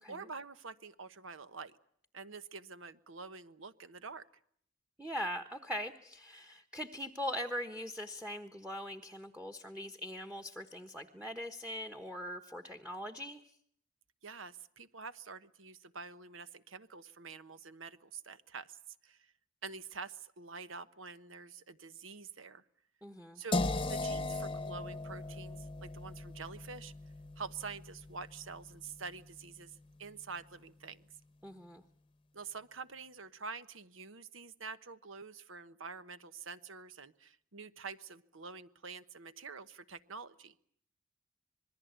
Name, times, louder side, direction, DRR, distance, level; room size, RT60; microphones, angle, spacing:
voice 1, 0.1-1.8 2.1-4.3 14.2-19.3 19.6-22.6 23.3-26.9 27.4-31.1 32.3-40.5, right 5 dB, 80° right, 13 dB, 1.2 m, -47 dB
voice 2, 5.0-13.4 23.0-23.4 31.4-31.8, equal, 5° right, 8 dB, 1.2 m, -41 dB
sound 1, 23.5-29.4, left 2 dB, 25° left, 1.0 m, -38 dB
26.5 x 21.5 x 8.1 m, 0.65 s
head